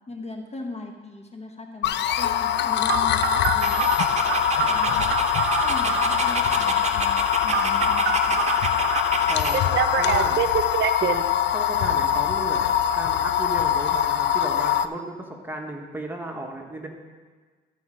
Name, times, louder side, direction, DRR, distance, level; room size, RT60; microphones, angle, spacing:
voice 1, 0.1-5.0 5.5-8.4, left 2 dB, 35° left, 3 dB, 1.0 m, -39 dB
sound 1, 1.8-14.9, left 10 dB, 60° left, 0.4 m, -23 dB
Telephone, 2.9-6.2 7.5-9.0 9.5-11.2, right 10 dB, 65° right, 0.5 m, -26 dB
Dog, 3.6-9.6, right 4 dB, 35° right, 0.8 m, -31 dB
voice 2, 9.2-10.4 10.9-16.9, right 1 dB, 10° right, 1 dB, 1.2 m, -35 dB
13.0 x 4.3 x 5.0 m, 1.4 s
cardioid pair, 90°, 20 cm